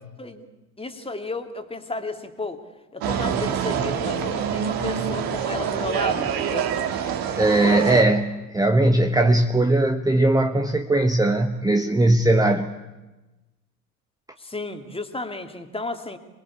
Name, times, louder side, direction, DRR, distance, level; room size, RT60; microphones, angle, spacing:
voice 1, 0.8-2.6 2.9-6.7 7.6-8.0 14.4-16.2, left 2 dB, 10° left, 7 dB, 2.7 m, -33 dB
sound 1, 3.0-8.0, right 8 dB, 50° right, 2.9 m, -26 dB
voice 2, 7.4-8.2 8.5-12.7, right 2 dB, 10° right, 7 dB, 1.3 m, -19 dB
27.5 x 21.5 x 8.6 m, 1.1 s
figure-of-eight pair, 70°, 46 cm